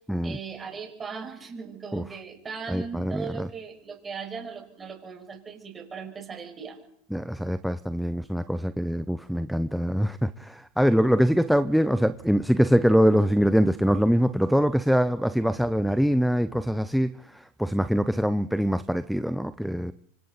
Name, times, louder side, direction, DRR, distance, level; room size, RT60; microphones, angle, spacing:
voice 1, 0.2-6.8, right 5 dB, 20° right, 5.9 m, -38 dB
voice 2, 2.7-3.5 7.1-19.9, equal, ahead, 0.7 m, -23 dB
26.5 x 25.0 x 4.1 m
hypercardioid pair, 110°, 0 cm